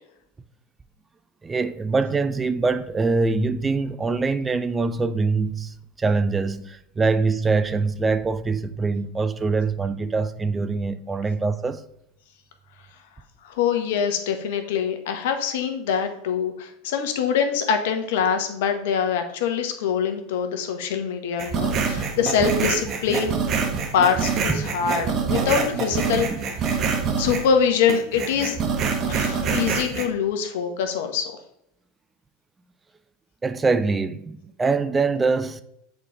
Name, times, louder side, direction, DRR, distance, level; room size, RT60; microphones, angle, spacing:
voice 1, 1.4-11.8 24.5-24.7 26.3-26.4 33.4-35.6, right 4 dB, 15° right, 0.5 m, -24 dB
voice 2, 13.4-23.4 23.9-26.3 27.2-28.6 29.1-31.3, left 7 dB, 70° left, 1.2 m, -24 dB
sound 1, 21.4-27.5 27.9-30.0, right 5 dB, 40° right, 1.2 m, -25 dB
7.4 x 4.2 x 4.9 m
hypercardioid pair, 95°, 0 cm